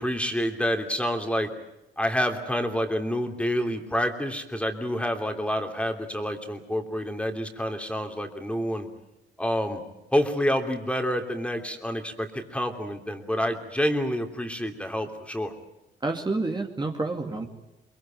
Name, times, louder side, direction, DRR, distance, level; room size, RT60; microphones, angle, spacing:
voice 1, 0.0-1.5 2.0-8.9 9.4-9.8 10.1-15.5, equal, 5° left, 5 dB, 3.1 m, -28 dB
voice 2, 16.0-17.5, right 3 dB, 20° right, 2 dB, 2.4 m, -28 dB
23.0 x 22.0 x 9.1 m, 0.96 s
cardioid pair, 90°, 20 cm